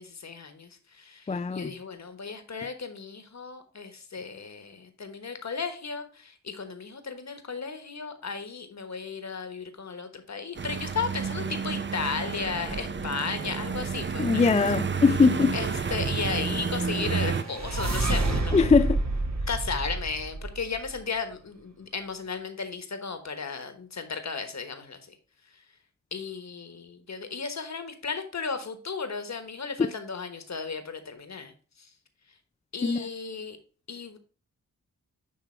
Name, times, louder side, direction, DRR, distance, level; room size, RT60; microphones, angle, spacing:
voice 1, 0.0-14.5 15.5-18.5 19.5-25.2 26.1-31.5 31.8-31.9 32.7-33.6 33.9-34.2, left 5 dB, 55° left, 1.3 m, -35 dB
voice 2, 1.3-1.7 14.2-15.6 18.5-19.0 32.8-33.1, left 4 dB, 20° left, 0.3 m, -21 dB
sound 1, 10.6-17.4, right 5 dB, 35° right, 0.6 m, -30 dB
sound 2, 16.8-20.9, right 2 dB, 55° right, 1.4 m, -29 dB
9.7 x 3.3 x 4.4 m
cardioid pair, 45°, 32 cm